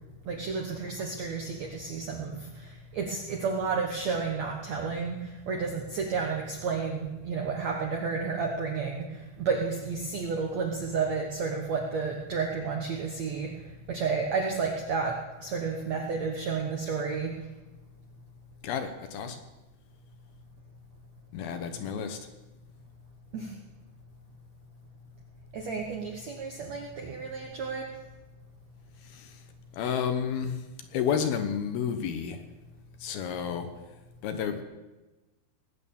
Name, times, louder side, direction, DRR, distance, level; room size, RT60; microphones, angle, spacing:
voice 1, 0.2-2.7 2.9-5.2 5.5-9.1 9.4-13.5 13.9-15.1 15.4-17.3 23.3-23.5 25.5-27.8, right 5 dB, 70° right, 1 dB, 1.6 m, -31 dB
voice 2, 18.6-19.4 21.3-22.2 29.0-29.4 29.7-30.7 30.9-32.4 33.0-34.6, left 7 dB, 70° left, 8 dB, 2.7 m, -31 dB
20.0 x 9.1 x 7.2 m, 1.1 s
omnidirectional pair, 5.0 m